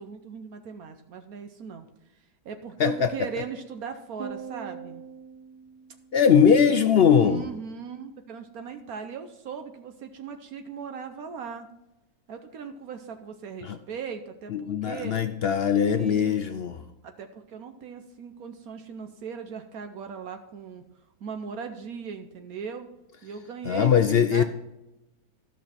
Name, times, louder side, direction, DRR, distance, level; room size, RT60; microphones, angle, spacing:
voice 1, 0.0-1.9 2.4-5.0 7.1-11.7 12.3-14.5 14.8-15.1 15.9-16.4 17.0-20.8 21.2-22.9 23.2-24.4, right 6 dB, 70° right, 7 dB, 1.2 m, -38 dB
voice 2, 2.8-3.1 6.1-7.5 13.6-13.8 14.5-16.8 23.7-24.4, left 7 dB, 65° left, 9 dB, 0.6 m, -21 dB
sound 1, 4.2-6.6, right 8 dB, 90° right, 1.6 m, -42 dB
13.5 x 6.0 x 4.3 m, 0.95 s
omnidirectional pair, 1.7 m